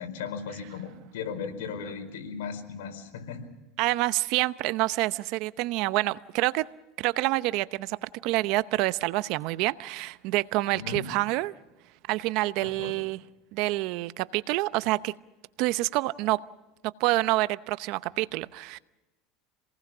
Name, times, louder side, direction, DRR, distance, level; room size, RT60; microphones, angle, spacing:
voice 1, 0.0-3.5 10.7-11.1 12.6-13.0, left 6 dB, 85° left, 4.6 m, -37 dB
voice 2, 3.8-6.7 7.0-11.5 12.1-13.2 13.5-15.1 15.6-16.4 17.0-18.8, right 19 dB, 60° right, 0.8 m, -27 dB
27.5 x 19.0 x 6.2 m
supercardioid pair, 125°, 0 cm